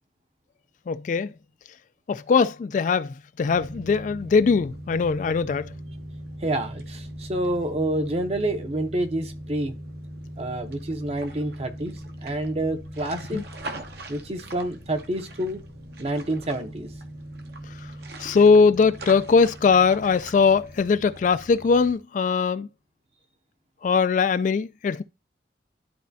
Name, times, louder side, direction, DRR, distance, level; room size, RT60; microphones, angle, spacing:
voice 1, 0.9-1.3 2.1-5.7 13.3-13.4 18.2-22.7 23.8-25.0, left 5 dB, 45° left, 0.3 m, -21 dB
sound 1, 3.5-21.9, right 1 dB, 60° right, 1.0 m, -40 dB
voice 2, 6.4-9.8 10.4-13.4 14.1-15.6 16.0-16.9, right 1 dB, 35° right, 0.8 m, -28 dB
11.5 x 4.2 x 2.7 m
head